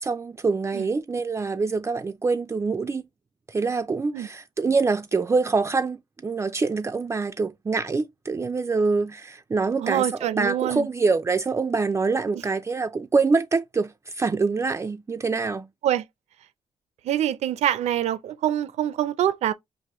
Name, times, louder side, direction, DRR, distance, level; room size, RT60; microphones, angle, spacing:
voice 1, 0.0-3.0 3.5-6.0 6.2-15.7, right 4 dB, 25° right, 0.4 m, -25 dB
voice 2, 9.8-10.9 12.3-12.4 15.8-16.0 17.0-19.5, right 11 dB, 80° right, 0.6 m, -25 dB
4.6 x 2.6 x 3.0 m
cardioid pair, 105°, 11 cm